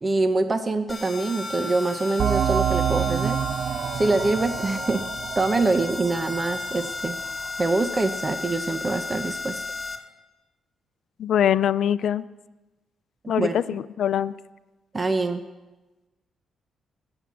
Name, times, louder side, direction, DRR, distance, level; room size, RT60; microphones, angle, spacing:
voice 1, 0.0-3.4 3.9-5.0 5.4-7.1 7.6-9.6 13.4-13.6 14.9-15.4, right 3 dB, 30° right, 9 dB, 1.0 m, -24 dB
sound 1, 0.9-10.0, left 3 dB, 30° left, 3.2 m, -34 dB
sound 2, 2.2-7.5, right 9 dB, 70° right, 0.5 m, -28 dB
voice 2, 11.2-12.2 13.3-14.3, left 10 dB, 70° left, 17 dB, 0.5 m, -23 dB
21.0 x 8.0 x 7.2 m, 1.1 s
cardioid pair, 70°, 0 cm